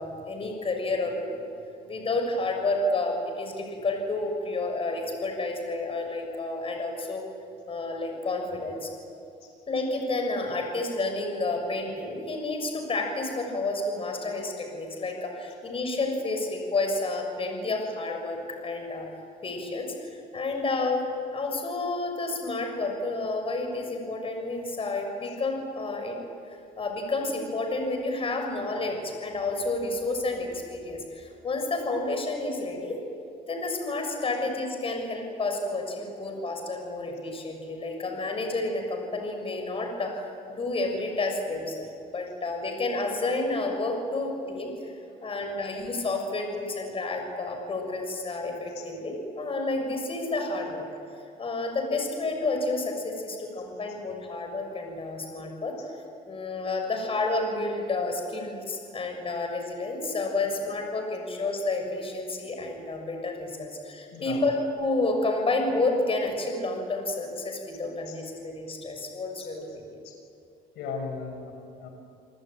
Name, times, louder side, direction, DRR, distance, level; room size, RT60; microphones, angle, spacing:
voice 1, 0.0-1.4 1.9-7.2 7.7-8.9 9.7-19.1 19.4-21.0 21.3-26.2 26.8-33.0 33.5-40.1 40.5-44.9 45.2-50.8 51.4-55.7 56.3-69.9, left 2 dB, 35° left, 3 dB, 6.7 m, -30 dB
voice 2, 64.1-64.4 68.1-68.2 69.4-69.5 70.0-70.1 70.7-71.9, left 5 dB, 85° left, 2 dB, 6.2 m, -37 dB
29.5 x 19.5 x 9.2 m, 2.6 s
cardioid pair, 110°, 17 cm